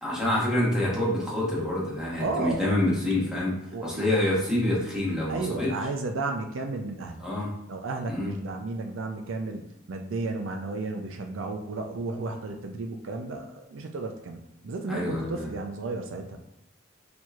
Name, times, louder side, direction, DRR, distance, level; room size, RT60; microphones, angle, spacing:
voice 1, 0.0-3.5 3.8-5.7 7.2-7.5 8.1-8.3 14.9-15.5, left 1 dB, 5° right, -6 dB, 1.1 m, -27 dB
voice 2, 2.2-2.6 3.7-4.0 5.3-7.2 7.7-16.4, right 3 dB, 90° right, 4 dB, 0.5 m, -33 dB
4.4 x 2.9 x 2.4 m, 0.84 s
head